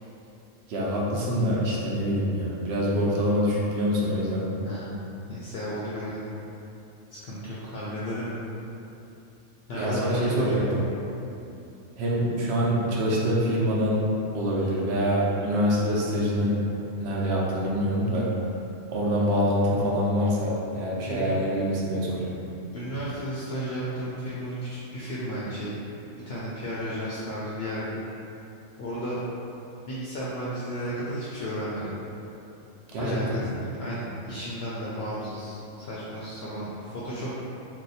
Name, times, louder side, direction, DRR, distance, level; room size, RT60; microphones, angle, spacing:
voice 1, 0.7-4.5 9.7-10.8 12.0-16.6 17.0-18.3 18.9-22.3 32.9-33.4, equal, 65° right, -5 dB, 0.8 m, -25 dB
voice 2, 4.6-5.0 5.3-6.2 7.1-8.3 9.7-10.6 21.1-21.4 22.7-25.8 26.3-28.0 28.8-29.2 29.9-31.9 33.0-33.5 33.8-37.3, equal, 65° left, -8 dB, 0.7 m, -33 dB
2.6 x 2.2 x 4.0 m, 2.8 s
omnidirectional pair, 1.3 m